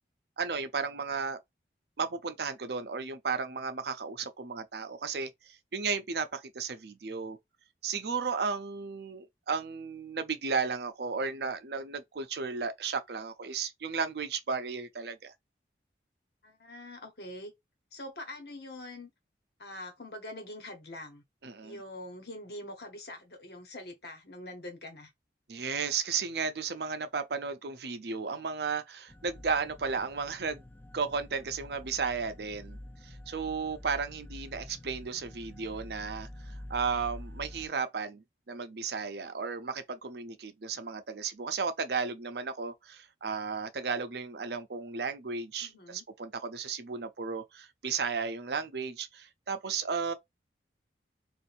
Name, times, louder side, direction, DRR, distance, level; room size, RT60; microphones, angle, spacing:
voice 1, 0.4-1.4 2.0-7.4 7.8-15.3 21.4-21.8 25.5-30.6 30.9-32.8 33.0-50.1, right 5 dB, 65° right, 0.6 m, -34 dB
voice 2, 16.4-17.5 17.9-19.1 19.6-21.2 21.6-25.1 45.6-46.0 50.0-50.1, left 1 dB, 60° left, 1.2 m, -44 dB
sound 1, 29.1-37.7, left 1 dB, 10° left, 0.4 m, -47 dB
2.7 x 2.5 x 4.1 m
head